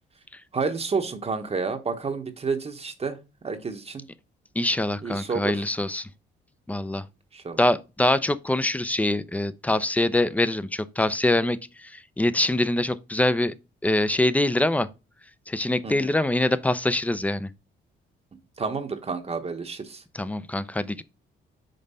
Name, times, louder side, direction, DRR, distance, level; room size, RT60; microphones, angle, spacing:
voice 1, 0.5-3.2 3.4-4.0 5.0-5.6 7.3-7.6 15.8-15.9 18.6-20.0, right 4 dB, 30° right, 0.9 m, -30 dB
voice 2, 4.6-6.1 6.7-7.0 7.6-13.5 13.8-14.9 15.5-17.5 20.1-21.0, left 1 dB, 5° left, 0.5 m, -24 dB
5.4 x 3.8 x 5.4 m
cardioid pair, 90°, 20 cm